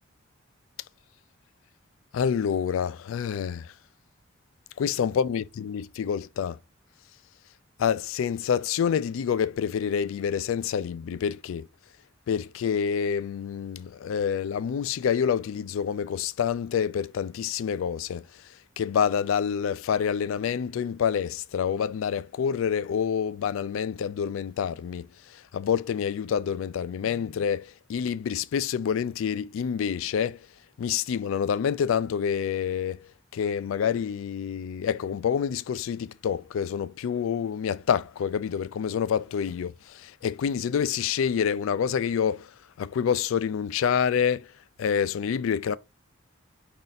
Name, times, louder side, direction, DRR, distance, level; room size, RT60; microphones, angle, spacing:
voice 1, 2.1-3.6 4.8-6.6 7.8-11.7 12.3-18.2 18.8-25.1 25.5-30.4 30.8-33.0 33.3-39.7 40.2-42.4 42.8-44.4 44.8-45.8, left 7 dB, 80° left, 0.3 m, -27 dB
5.3 x 2.5 x 3.9 m
head